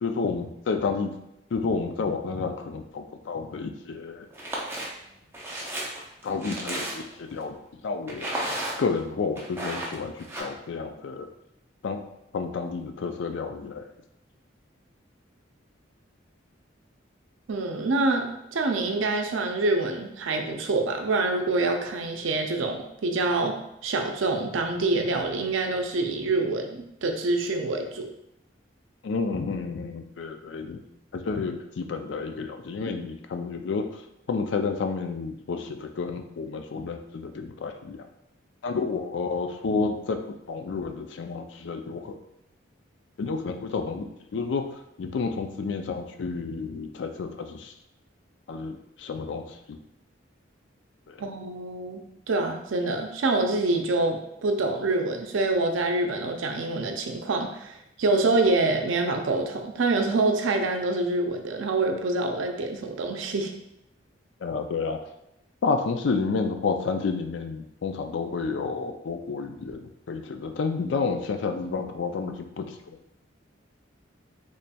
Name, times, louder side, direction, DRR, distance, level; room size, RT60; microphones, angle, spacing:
voice 1, 0.0-1.1 1.5-4.3 6.2-7.6 7.8-8.3 8.8-11.3 11.8-12.0 12.3-13.9 29.0-30.8 31.1-34.0 34.3-38.1 38.6-40.2 40.5-42.1 43.2-44.7 45.0-47.7 48.5-49.8 51.1-51.2 64.4-65.0 65.6-73.0, left 4 dB, 70° left, 6 dB, 0.4 m, -30 dB
sound 1, 4.3-4.9 5.3-7.2 8.1-9.0 9.4-10.4, right 1 dB, 15° right, 0.5 m, -33 dB
voice 2, 17.5-28.1 51.2-63.5, right 2 dB, 85° right, 4 dB, 0.5 m, -26 dB
4.1 x 3.1 x 2.2 m, 0.82 s
head